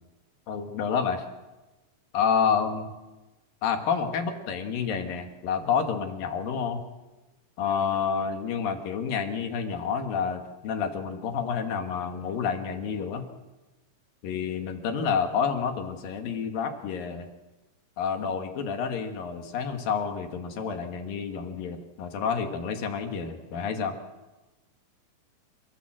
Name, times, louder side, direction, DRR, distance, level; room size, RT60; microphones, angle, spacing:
voice 1, 0.5-1.3 2.1-2.9 3.6-6.8 7.6-13.2 14.2-17.3 18.0-23.9, left 6 dB, 90° left, 5 dB, 3.6 m, -29 dB
29.0 x 15.0 x 7.7 m, 1.1 s
omnidirectional pair, 3.9 m